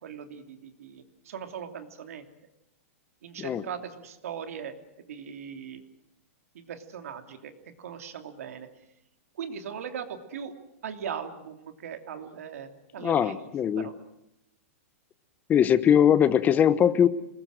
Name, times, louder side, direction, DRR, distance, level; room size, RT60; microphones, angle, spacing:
voice 1, 0.0-2.2 3.2-4.7 5.0-5.8 6.5-7.5 7.8-8.7 9.3-10.5 10.8-13.3 13.8-13.9, right 7 dB, 80° right, 6 dB, 3.0 m, -39 dB
voice 2, 13.0-13.9 15.5-17.1, left 9 dB, 20° left, 15 dB, 1.0 m, -21 dB
27.0 x 20.5 x 7.8 m, 0.86 s
hypercardioid pair, 145°, 8 cm